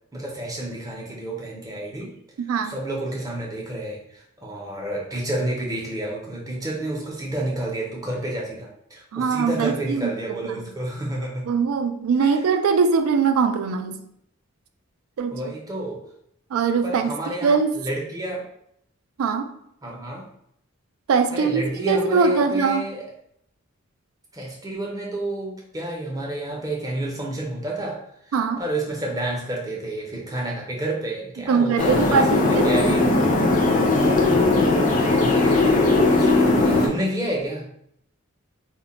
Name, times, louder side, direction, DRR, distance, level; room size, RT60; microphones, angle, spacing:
voice 1, 0.1-2.1 2.6-11.4 12.2-12.4 15.3-16.0 16.8-18.5 19.8-20.3 21.3-23.0 24.3-28.0 28.3-33.4 34.8-37.7, right 1 dB, 15° right, -2 dB, 0.5 m, -30 dB
voice 2, 9.1-10.1 10.4-10.6 11.5-14.0 15.2-15.4 16.5-17.1 17.4-17.7 19.2-19.5 21.1-22.9 28.3-28.6 31.5-32.7, right 5 dB, 85° right, 8 dB, 0.3 m, -21 dB
sound 1, 31.8-36.9, left 2 dB, 35° left, 0.4 m, -18 dB
2.1 x 2.1 x 3.7 m, 0.72 s
head